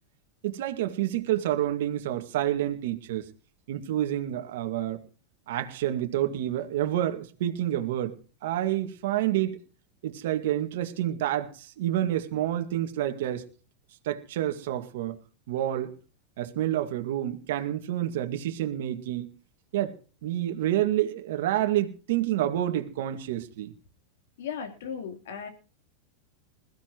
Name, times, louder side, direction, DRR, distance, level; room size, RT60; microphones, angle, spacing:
voice 1, 0.4-3.2 3.7-5.0 5.5-8.1 8.4-9.6 10.0-13.4 14.0-15.2 15.5-15.9 16.4-19.3 19.7-20.0 20.2-23.7, right 12 dB, 70° right, 2.1 m, -28 dB
voice 2, 24.4-25.5, left 7 dB, 75° left, 3.5 m, -36 dB
21.0 x 15.5 x 3.1 m
hypercardioid pair, 120°, 0 cm